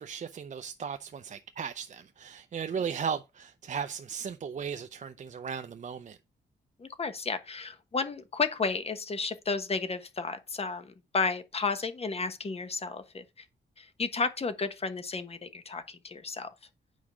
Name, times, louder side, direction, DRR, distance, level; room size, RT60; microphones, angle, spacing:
voice 1, 0.0-6.2, right 7 dB, 40° right, 0.6 m, -36 dB
voice 2, 6.8-13.4 13.8-16.5, left 4 dB, 35° left, 1.3 m, -32 dB
9.3 x 4.9 x 6.1 m
wide cardioid pair, 155°, 19 cm